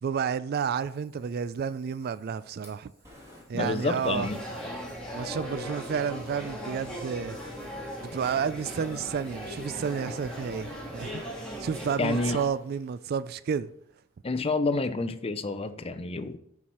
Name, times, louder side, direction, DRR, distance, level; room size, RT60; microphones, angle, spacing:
voice 1, 0.0-2.9 3.5-4.3 5.1-7.4 8.1-11.2 11.6-13.7, right 7 dB, 50° right, 0.3 m, -31 dB
Fire, 0.7-13.9, equal, 15° right, 2.4 m, -56 dB
voice 2, 3.5-4.4 12.0-12.4 14.2-16.4, left 3 dB, 30° left, 0.5 m, -29 dB
sound 1, 4.0-12.5, equal, 5° left, 2.3 m, -38 dB
11.0 x 4.7 x 4.3 m
head